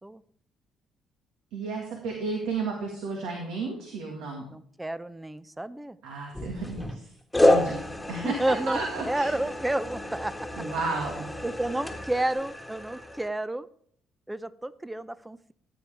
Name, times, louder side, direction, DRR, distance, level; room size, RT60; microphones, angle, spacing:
voice 1, 1.5-4.5 6.0-7.1 7.4-7.8 8.1-9.3 10.6-11.3, right 3 dB, 65° right, 1 dB, 1.9 m, -33 dB
voice 2, 4.5-6.0 8.2-8.8 9.1-10.6 11.4-13.7 14.3-15.5, right 1 dB, 10° right, 16 dB, 0.7 m, -31 dB
sound 1, 6.3-7.0 7.3-13.3, left 1 dB, 10° left, 1.7 m, -29 dB
15.0 x 9.3 x 3.5 m, 0.63 s
figure-of-eight pair, 45°, 0 cm